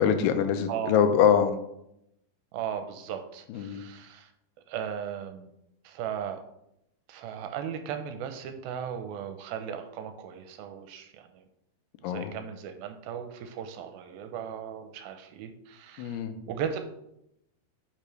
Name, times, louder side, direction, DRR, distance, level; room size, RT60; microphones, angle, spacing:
voice 1, 0.0-1.6 3.5-3.9 12.0-12.3 16.0-16.4, left 8 dB, 85° left, 8 dB, 2.7 m, -24 dB
voice 2, 0.7-1.0 2.5-4.3 4.7-5.5 5.8-6.4 7.1-11.5 12.0-16.2 16.5-16.8, right 8 dB, 80° right, 7 dB, 2.3 m, -37 dB
8.8 x 5.7 x 3.2 m, 0.81 s
omnidirectional pair, 4.5 m